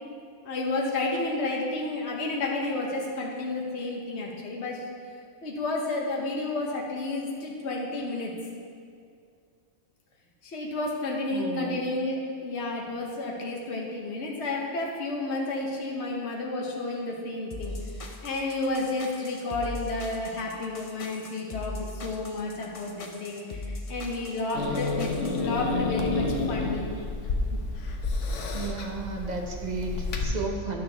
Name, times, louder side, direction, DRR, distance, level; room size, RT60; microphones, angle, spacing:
voice 1, 0.4-4.8 5.4-8.3 10.4-17.8 18.2-26.9, left 2 dB, 65° left, -2 dB, 1.3 m, -31 dB
voice 2, 11.3-11.8 19.2-19.4 28.5-30.8, right 3 dB, 40° right, 1 dB, 1.0 m, -33 dB
sound 1, 17.5-25.4, left 2 dB, 35° left, 0.6 m, -40 dB
Growling / Hiss, 24.5-30.2, left 3 dB, 85° left, 1.2 m, -30 dB
11.5 x 6.0 x 3.4 m, 2.3 s
omnidirectional pair, 1.3 m